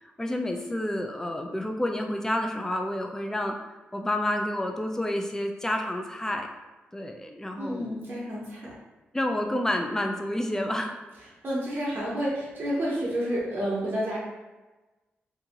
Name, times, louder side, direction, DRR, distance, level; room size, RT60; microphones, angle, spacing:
voice 1, 0.0-3.5 3.9-6.5 6.9-8.0 9.1-11.0, left 1 dB, 10° left, 3 dB, 0.4 m, -29 dB
voice 2, 7.6-8.8 11.4-14.2, equal, 50° right, -6 dB, 0.7 m, -30 dB
2.9 x 2.5 x 2.4 m, 1.2 s
cardioid pair, 60°, 4 cm